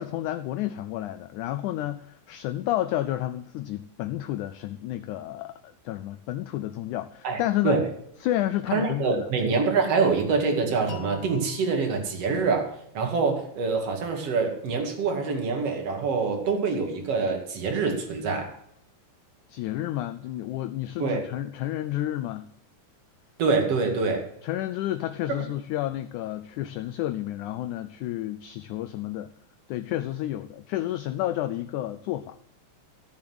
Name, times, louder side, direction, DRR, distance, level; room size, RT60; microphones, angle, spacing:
voice 1, 0.0-7.8 8.2-9.3 19.5-22.5 24.4-29.3 29.7-32.4, left 14 dB, 80° left, 10 dB, 1.8 m, -30 dB
voice 2, 7.2-7.9 8.7-12.7 12.9-18.5 21.0-21.2 23.4-24.2 25.4-25.5, right 4 dB, 45° right, 3 dB, 3.1 m, -25 dB
sound 1, 10.9-13.8, left 7 dB, 60° left, 2.5 m, -45 dB
15.5 x 7.1 x 7.8 m, 0.75 s
omnidirectional pair, 4.1 m